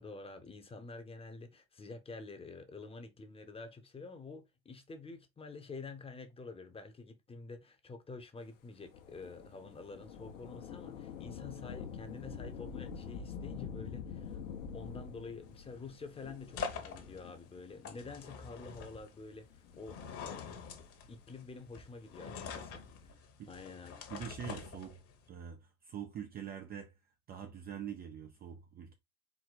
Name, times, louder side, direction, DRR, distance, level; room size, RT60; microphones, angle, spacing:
voice 1, 0.0-14.4 14.7-19.4 19.7-20.0 21.1-23.1 23.5-24.0, left 3 dB, 15° left, 0.9 m, -48 dB
Thunder / Rain, 8.8-17.8 18.5-18.6 19.5-20.8 22.3-23.1, left 7 dB, 65° left, 1.1 m, -46 dB
sound 1, 15.4-25.3, left 6 dB, 35° left, 1.1 m, -46 dB
voice 2, 24.1-25.0 25.3-26.9 27.3-28.9, right 8 dB, 25° right, 0.5 m, -44 dB
4.8 x 2.1 x 4.0 m
hypercardioid pair, 100°, 40 cm